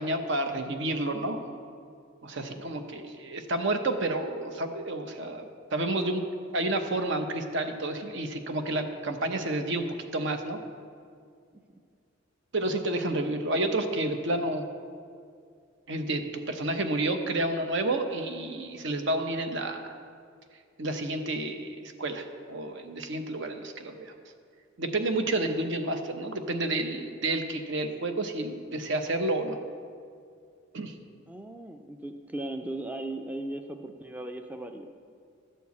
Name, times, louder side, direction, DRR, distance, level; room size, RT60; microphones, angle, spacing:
voice 1, 0.0-1.4 2.2-6.2 6.5-9.8 10.1-10.6 12.5-14.7 15.9-20.0 20.8-24.1 24.8-29.6 30.7-30.9, right 2 dB, 65° right, 6 dB, 0.9 m, -30 dB
voice 2, 2.3-2.6 11.7-11.8 31.3-34.9, right 1 dB, 10° right, 6 dB, 0.4 m, -38 dB
12.5 x 4.5 x 8.3 m, 2.3 s
head